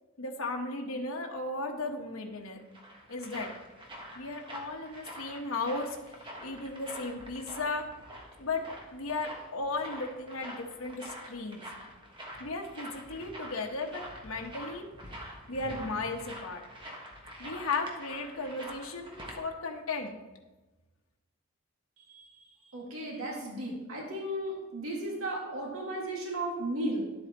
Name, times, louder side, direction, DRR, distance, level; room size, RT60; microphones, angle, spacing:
voice 1, 0.2-2.6 3.1-3.5 4.1-7.9 8.4-8.6 8.9-11.6 12.4-14.8 15.5-16.6 17.4-20.2, left 3 dB, 75° left, 1 dB, 1.1 m, -35 dB
sound 1, 2.4-19.4, equal, 25° right, 1.4 m, -46 dB
voice 2, 22.7-27.1, right 1 dB, 80° right, -2 dB, 2.0 m, -35 dB
11.5 x 7.8 x 3.0 m, 1.1 s
head